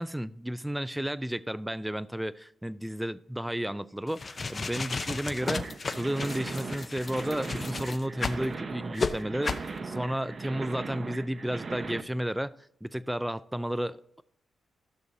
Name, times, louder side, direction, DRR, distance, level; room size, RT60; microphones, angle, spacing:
voice 1, 0.0-5.7 5.9-12.5 12.8-14.2, equal, 5° right, 0.4 m, -32 dB
sound 1, 4.1-8.4 9.0-9.1 9.4-9.7, left 4 dB, 35° left, 0.6 m, -33 dB
sound 2, 5.4-12.0, right 4 dB, 45° right, 0.7 m, -38 dB
14.5 x 6.2 x 2.7 m
cardioid pair, 90°, 0 cm